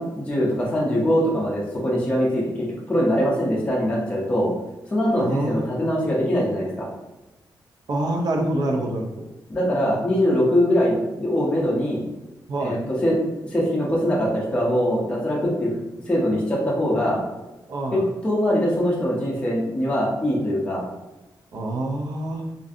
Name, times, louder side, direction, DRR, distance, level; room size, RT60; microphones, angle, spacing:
voice 1, 0.0-4.5 4.9-6.9 9.5-12.0 12.6-13.2 13.4-15.7 16.1-17.2 17.9-20.8, equal, 15° left, -5 dB, 0.5 m, -22 dB
voice 2, 5.2-5.6 7.9-9.3 12.5-12.8 17.7-18.0 21.5-22.4, right 1 dB, 60° right, 2 dB, 0.3 m, -26 dB
2.5 x 2.5 x 2.4 m, 1.0 s
wide cardioid pair, 180°, 8 cm